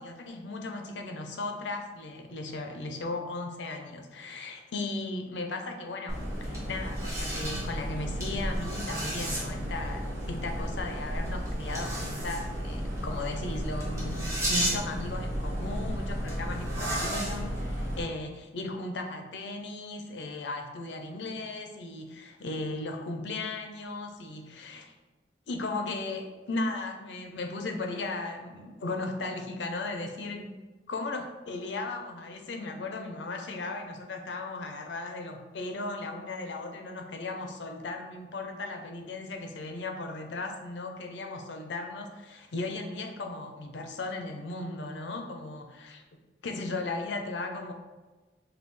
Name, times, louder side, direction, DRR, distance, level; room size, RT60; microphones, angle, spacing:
voice 1, 0.0-24.9 25.5-30.5 30.9-46.0 46.4-47.7, left 2 dB, 85° left, 4 dB, 0.5 m, -36 dB
sound 1, 6.1-18.0, equal, 15° right, 1.0 m, -32 dB
5.3 x 2.3 x 3.1 m, 1.3 s
head